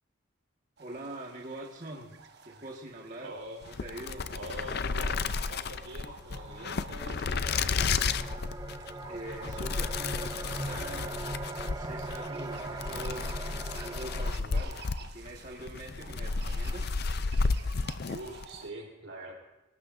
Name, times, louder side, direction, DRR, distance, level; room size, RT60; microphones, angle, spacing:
voice 1, 0.8-2.2 2.4-3.3 3.8-4.3 9.1-17.0, right 1 dB, 40° right, -1 dB, 1.7 m, -44 dB
sound 1, 0.8-18.7, right 4 dB, 55° right, 1.2 m, -52 dB
voice 2, 3.2-3.6 4.3-7.9 18.0-19.3, right 1 dB, 90° right, 0 dB, 4.4 m, -44 dB
sound 2, 3.6-18.5, left 4 dB, 55° left, 0.5 m, -33 dB
sound 3, 5.9-14.3, right 2 dB, 20° right, 0.6 m, -41 dB
25.5 x 18.0 x 2.6 m, 0.97 s
head